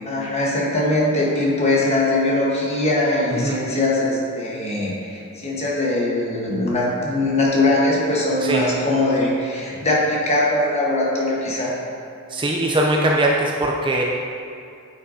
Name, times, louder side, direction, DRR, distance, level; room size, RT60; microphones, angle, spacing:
voice 1, 0.0-11.7, left 2 dB, 30° left, -4 dB, 1.2 m, -21 dB
voice 2, 12.3-14.0, right 1 dB, 20° right, -1 dB, 0.4 m, -21 dB
9.7 x 5.5 x 2.7 m, 2.6 s
head